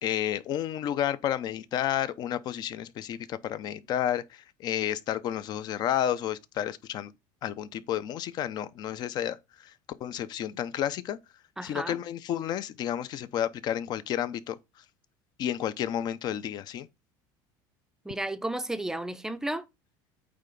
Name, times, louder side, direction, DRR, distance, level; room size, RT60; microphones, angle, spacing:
voice 1, 0.0-7.1 7.4-9.4 10.0-11.2 11.6-14.6 15.4-16.9, left 10 dB, 45° left, 0.7 m, -31 dB
voice 2, 11.6-12.0 18.0-19.6, right 1 dB, 5° right, 0.6 m, -33 dB
8.8 x 3.4 x 5.4 m
cardioid pair, 135°, 10 cm